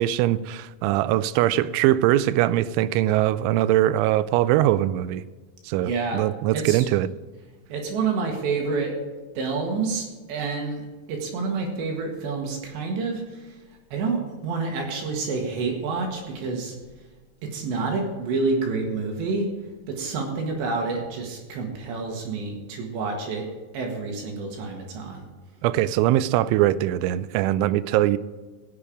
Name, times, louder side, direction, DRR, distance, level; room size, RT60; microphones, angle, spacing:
voice 1, 0.0-5.2 5.7-7.1 25.6-28.2, right 14 dB, 85° right, 16 dB, 3.0 m, -22 dB
voice 2, 5.8-6.2 6.5-6.9 7.7-8.9 9.4-13.5 13.9-16.7 17.4-19.5 19.9-23.5 23.7-25.2, right 4 dB, 70° right, 1 dB, 3.8 m, -28 dB
17.0 x 7.0 x 5.0 m, 1.3 s
omnidirectional pair, 5.4 m